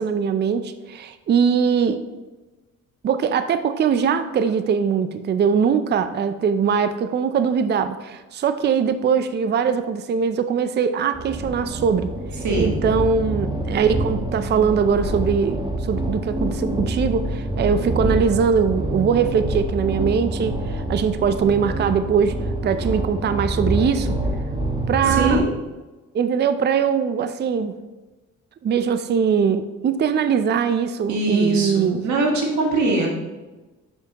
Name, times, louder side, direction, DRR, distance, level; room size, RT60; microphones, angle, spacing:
voice 1, 0.0-2.0 3.0-12.1 12.6-22.4 22.6-24.2 24.9-25.4 26.1-27.8 28.6-32.0, right 6 dB, 35° right, 11 dB, 0.4 m, -21 dB
sound 1, 11.1-25.4, right 1 dB, 15° right, 1.0 m, -26 dB
voice 2, 12.4-12.8 25.1-25.4 31.1-33.1, right 2 dB, 70° right, 0 dB, 1.6 m, -22 dB
7.0 x 5.7 x 2.9 m, 1.2 s
cardioid pair, 90°, 30 cm